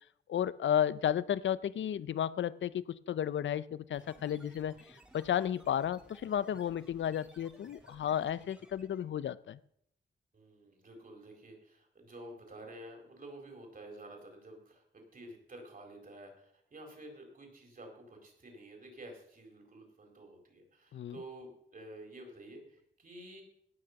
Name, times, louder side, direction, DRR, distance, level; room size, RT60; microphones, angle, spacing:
voice 1, 0.3-9.6 20.9-21.2, left 10 dB, 75° left, 17 dB, 0.5 m, -33 dB
sound 1, 3.9-9.1, equal, 5° right, 1.9 m, -59 dB
voice 2, 10.3-23.4, right 1 dB, 45° right, 1 dB, 4.3 m, -50 dB
18.0 x 6.4 x 7.0 m, 0.72 s
wide cardioid pair, 135°, 19 cm